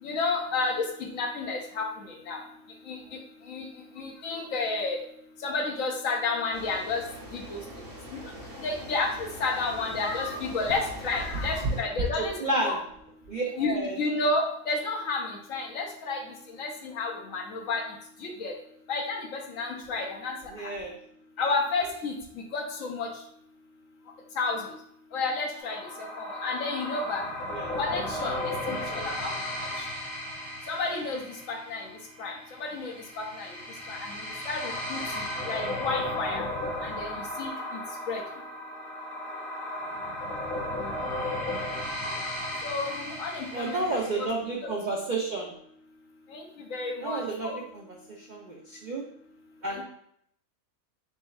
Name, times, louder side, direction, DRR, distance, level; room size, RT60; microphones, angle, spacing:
voice 1, 0.0-2.4 2.9-3.0 3.5-3.7 4.0-5.0 5.4-7.0 7.3-7.6 8.1-8.3 8.6-12.8 13.6-16.2 16.5-17.8 18.2-18.6 18.9-20.7 21.4-23.1 24.4-24.8 25.1-27.2 27.8-29.3 29.8-29.9 30.7-31.9 32.2-33.5 33.9-34.2 34.5-36.4 36.8-37.8 38.1-38.2 42.6-44.3 44.6-44.7 46.3-47.6, left 3 dB, 70° left, 2 dB, 1.1 m, -31 dB
sound 1, 6.5-11.8, right 1 dB, 30° right, 0.8 m, -43 dB
voice 2, 12.2-12.8 13.3-14.0 20.5-21.0 27.5-27.8 41.7-41.9 43.5-45.5 47.0-49.0 49.6-49.8, right 2 dB, 60° right, -2 dB, 0.4 m, -31 dB
sound 2, 25.6-44.3, left 1 dB, 40° left, 1.1 m, -35 dB
4.3 x 4.1 x 2.3 m, 0.70 s
omnidirectional pair, 1.6 m